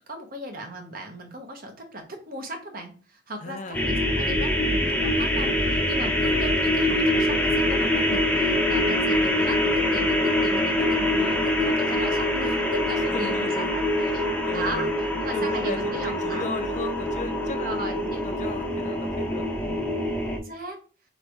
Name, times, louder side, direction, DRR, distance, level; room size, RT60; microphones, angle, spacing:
voice 1, 0.1-14.2 14.5-14.9 15.2-16.4 17.6-18.2 20.4-20.8, right 1 dB, 55° right, 4 dB, 0.9 m, -37 dB
voice 2, 3.4-4.0 6.0-6.2 13.1-13.7 14.1-14.9 15.3-19.9, left 3 dB, 45° left, 7 dB, 0.6 m, -37 dB
sound 1, 3.7-20.4, left 1 dB, 10° left, 0.7 m, -24 dB
3.1 x 2.6 x 4.5 m, 0.38 s
head